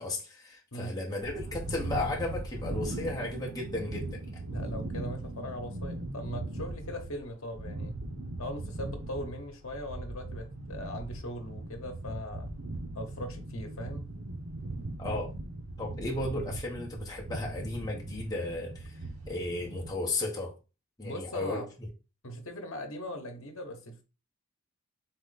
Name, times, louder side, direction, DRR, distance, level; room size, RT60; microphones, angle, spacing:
voice 1, 0.0-4.2 15.0-15.3 15.8-19.0 19.3-20.5 21.0-21.9, left 2 dB, 20° left, 1.0 m, -34 dB
sound 1, 1.2-19.9, right 2 dB, 70° right, 1.0 m, -39 dB
voice 2, 4.5-7.9 8.4-12.5 12.9-14.0 21.0-21.7 22.2-24.0, left 1 dB, 65° left, 1.0 m, -40 dB
4.2 x 3.1 x 4.0 m
head